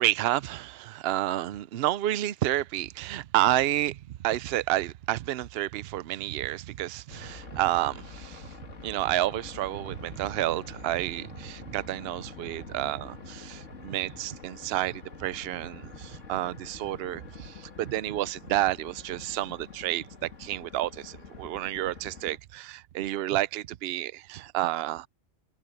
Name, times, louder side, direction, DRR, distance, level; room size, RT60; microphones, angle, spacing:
voice 1, 0.0-8.5 8.8-25.1, right 14 dB, 65° right, 0.7 m, -30 dB
sound 1, 7.1-22.4, left 4 dB, 70° left, 2.2 m, -46 dB
omnidirectional pair, 1.3 m